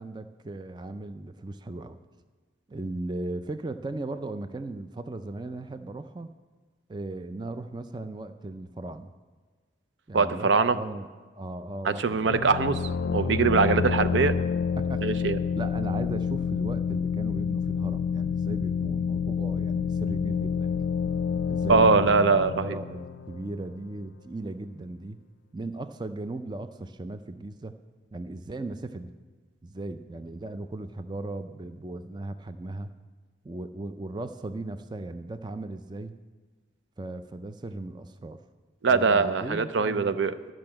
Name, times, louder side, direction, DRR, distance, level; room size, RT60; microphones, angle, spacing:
voice 1, 0.0-2.0 2.7-6.3 6.9-9.1 10.1-11.1 11.3-12.5 13.8-13.9 14.8-15.1 15.5-20.9 21.5-25.2 25.5-27.7 28.1-29.1 29.6-32.9 33.4-36.2 37.0-38.4 38.9-40.2, right 2 dB, 25° right, 10 dB, 0.4 m, -37 dB
voice 2, 10.1-10.8 11.8-12.8 13.1-14.4 15.0-15.4 21.7-22.8 38.8-40.5, right 4 dB, 80° right, 12 dB, 0.6 m, -22 dB
sound 1, 12.3-23.8, left 6 dB, 90° left, 0.5 m, -28 dB
12.5 x 6.1 x 8.7 m, 1.4 s
head